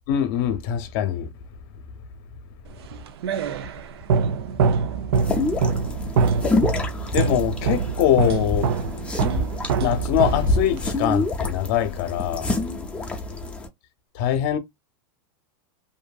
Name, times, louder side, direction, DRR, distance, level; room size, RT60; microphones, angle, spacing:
voice 1, 0.1-1.3 7.1-8.7 9.8-12.5 14.1-14.6, left 11 dB, 50° left, 0.7 m, -23 dB
sound 1, 2.8-10.9, right 5 dB, 80° right, 0.5 m, -25 dB
sound 2, 5.1-13.7, left 2 dB, 10° left, 0.6 m, -27 dB
2.7 x 2.6 x 2.3 m
supercardioid pair, 150°, 13 cm